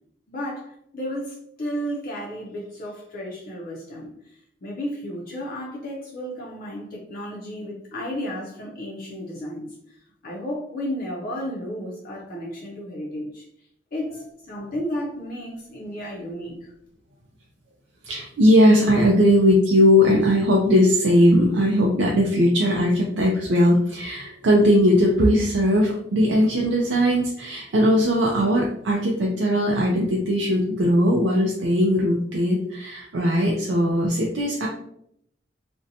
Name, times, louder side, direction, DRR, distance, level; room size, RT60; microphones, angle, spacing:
voice 1, 0.3-13.4 13.9-16.7, equal, 50° left, -4 dB, 0.5 m, -33 dB
voice 2, 18.0-34.7, equal, 75° right, -1 dB, 0.4 m, -19 dB
2.6 x 2.1 x 2.6 m, 0.73 s
head